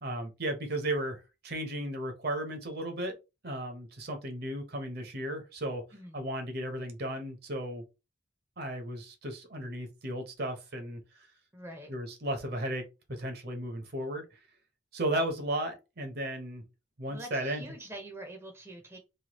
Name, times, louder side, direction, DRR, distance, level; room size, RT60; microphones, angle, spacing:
voice 1, 0.0-3.2 3.4-5.8 6.1-7.8 8.6-11.0 11.9-12.8 13.1-14.2 14.9-16.6 17.0-17.6, right 1 dB, 50° right, 0.7 m, -35 dB
voice 2, 11.5-11.9 17.1-19.0, right 1 dB, 15° right, 0.6 m, -45 dB
3.1 x 2.2 x 2.9 m
head